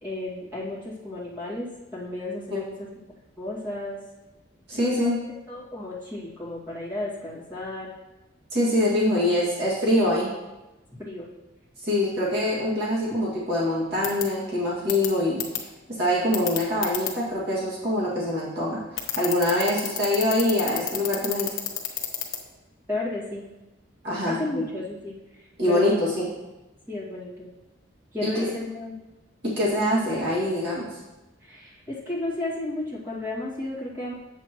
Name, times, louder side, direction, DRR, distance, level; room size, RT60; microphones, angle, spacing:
voice 1, 0.0-2.9 3.4-4.0 4.7-5.1 5.5-7.9 11.0-11.3 22.9-23.4 24.3-26.0 26.9-27.5 28.1-29.0 31.4-34.1, left 2 dB, 10° right, -8 dB, 2.1 m, -33 dB
voice 2, 4.7-5.2 8.5-10.3 11.8-18.8 19.2-21.5 24.0-24.6 25.6-26.2 28.2-28.5 29.4-31.0, left 1 dB, 55° right, -8 dB, 2.1 m, -24 dB
sound 1, 14.0-14.2 14.9-15.1 15.4-15.6 16.3-17.1 19.0-22.4, left 12 dB, 85° left, 1.1 m, -28 dB
7.7 x 7.5 x 3.0 m, 1.1 s
head